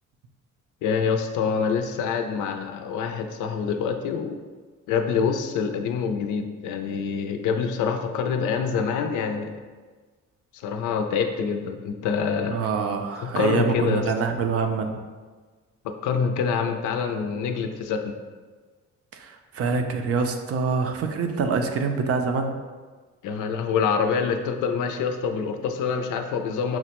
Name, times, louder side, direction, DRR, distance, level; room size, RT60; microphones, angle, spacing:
voice 1, 0.8-4.4 4.9-9.5 10.6-12.6 13.2-14.0 16.0-18.1 23.2-26.8, left 6 dB, 85° left, 6 dB, 0.5 m, -26 dB
voice 2, 12.5-14.9 19.1-22.5, right 5 dB, 50° right, 5 dB, 0.5 m, -25 dB
5.8 x 2.1 x 2.9 m, 1.4 s
cardioid pair, 90°, 30 cm